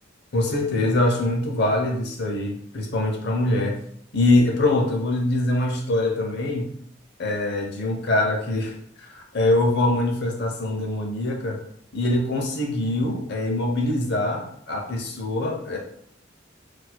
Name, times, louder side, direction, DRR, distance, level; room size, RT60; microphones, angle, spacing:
voice 1, 0.3-3.8 4.1-6.7 7.2-8.7 9.1-11.6 11.9-15.8, left 1 dB, 60° left, 2 dB, 0.7 m, -23 dB
4.3 x 2.6 x 2.2 m, 0.66 s
head